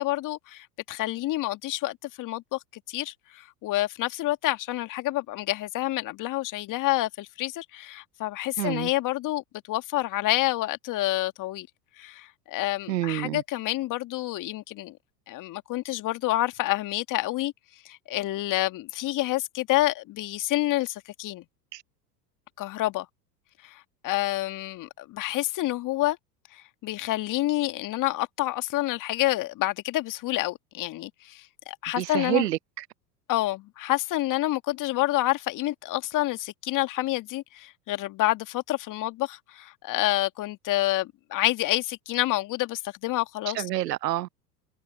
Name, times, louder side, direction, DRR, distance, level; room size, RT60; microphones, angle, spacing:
voice 1, 0.0-2.6 2.9-11.7 12.0-15.0 15.3-17.5 17.9-21.4 22.6-23.1 23.6-26.2 26.5-32.4 33.3-43.6, left 17 dB, 40° left, 2.0 m, -28 dB
voice 2, 8.6-8.9 12.9-13.4 21.7-21.8 32.0-32.8 43.5-44.3, right 15 dB, 80° right, 0.7 m, -28 dB
hypercardioid pair, 90°, 48 cm